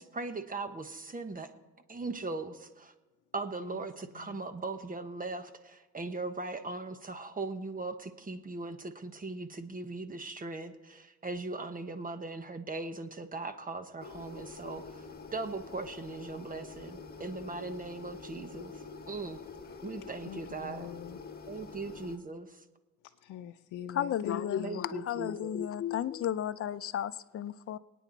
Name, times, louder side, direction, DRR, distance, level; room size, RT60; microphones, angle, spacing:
voice 1, 0.0-1.5 1.9-2.9 3.3-15.1 15.3-19.4 19.8-20.9 21.5-22.6 24.6-25.6, right 3 dB, 30° right, 1.3 m, -39 dB
voice 2, 3.6-4.5 14.5-14.6 19.6-19.8 20.2-21.2 23.0-24.9, left 10 dB, 85° left, 0.6 m, -45 dB
sound 1, 14.0-22.2, left 4 dB, 30° left, 1.7 m, -46 dB
voice 3, 23.9-27.8, left 10 dB, 50° left, 0.6 m, -33 dB
24.5 x 9.3 x 4.1 m
cardioid pair, 90°, 30 cm